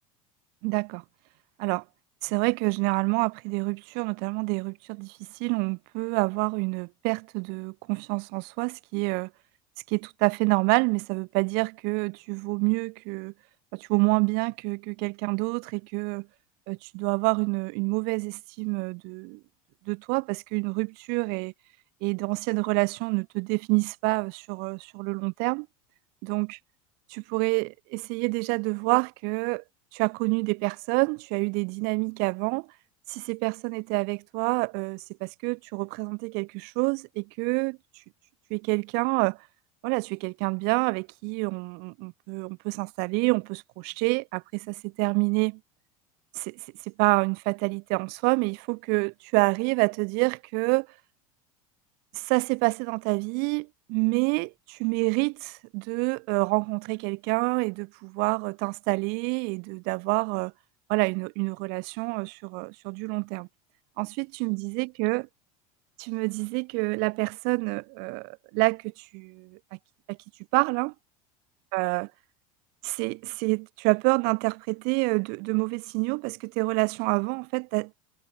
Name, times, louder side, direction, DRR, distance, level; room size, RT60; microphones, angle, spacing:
voice 1, 0.6-1.0 1.6-1.8 2.2-9.3 9.9-13.3 13.7-16.3 16.7-19.4 19.9-21.5 22.0-25.7 26.2-26.6 27.1-29.6 29.9-32.7 33.1-37.8 38.5-39.4 39.8-45.6 46.3-46.7 47.0-50.9 52.1-60.5 60.9-63.5 64.0-65.3 66.0-69.8 70.1-70.2 70.5-70.9 71.7-72.1 72.8-78.0, right 33 dB, 55° right, 6.9 m, -27 dB
figure-of-eight pair, 75°, 19 cm